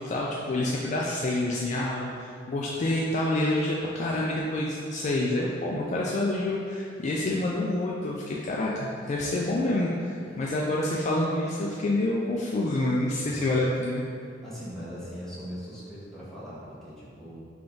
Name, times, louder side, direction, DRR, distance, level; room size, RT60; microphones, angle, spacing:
voice 1, 0.0-14.0, left 1 dB, 35° left, -3 dB, 0.3 m, -27 dB
voice 2, 10.2-10.5 13.2-13.5 14.2-17.4, equal, ahead, -10 dB, 1.1 m, -41 dB
3.7 x 3.4 x 3.8 m, 2.4 s
head